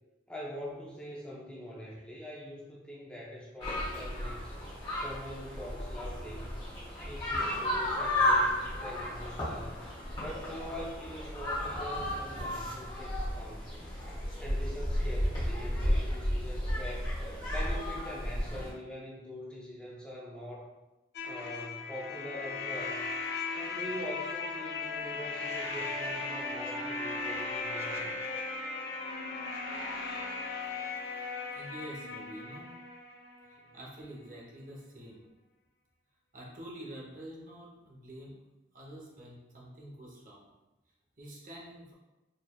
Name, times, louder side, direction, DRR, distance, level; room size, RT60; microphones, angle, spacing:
voice 1, 0.3-4.7 5.0-6.6 6.9-9.8 10.1-13.9 14.4-17.1 17.5-20.7 21.2-23.1 23.5-28.1 33.6-33.7, equal, 5° left, -5 dB, 0.5 m, -43 dB
sound 1, 3.6-18.7, left 1 dB, 25° left, 1.2 m, -33 dB
sound 2, 21.1-33.8, left 3 dB, 65° left, 0.5 m, -37 dB
voice 2, 31.5-32.7 33.5-35.2 36.3-38.4 38.7-40.5 41.2-41.9, equal, 45° right, -3 dB, 0.8 m, -47 dB
4.1 x 3.2 x 2.2 m, 1.0 s
head